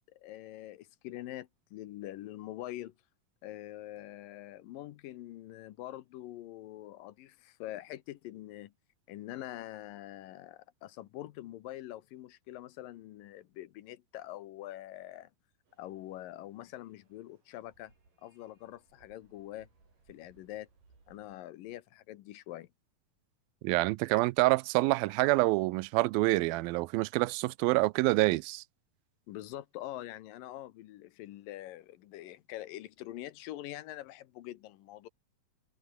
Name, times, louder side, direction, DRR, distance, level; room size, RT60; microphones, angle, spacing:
voice 1, 0.1-2.9 3.4-8.7 9.1-15.3 15.8-17.9 18.2-19.7 20.1-20.7 21.1-22.7 29.3-35.1, left 14 dB, 75° left, 2.6 m, -44 dB
sound 1, 15.7-21.4, right 4 dB, 65° right, 9.0 m, -67 dB
voice 2, 23.6-28.6, right 21 dB, 85° right, 2.4 m, -27 dB
omnidirectional pair, 4.1 m